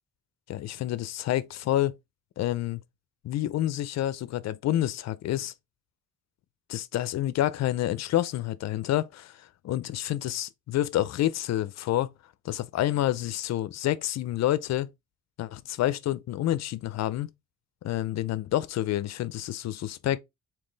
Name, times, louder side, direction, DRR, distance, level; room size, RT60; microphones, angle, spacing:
voice 1, 0.5-1.9 2.4-2.8 3.2-5.5 6.7-12.1 12.4-14.9 15.4-17.3 17.8-20.2, left 13 dB, 60° left, 0.5 m, -28 dB
3.6 x 2.8 x 3.8 m
cardioid pair, 90°, 30 cm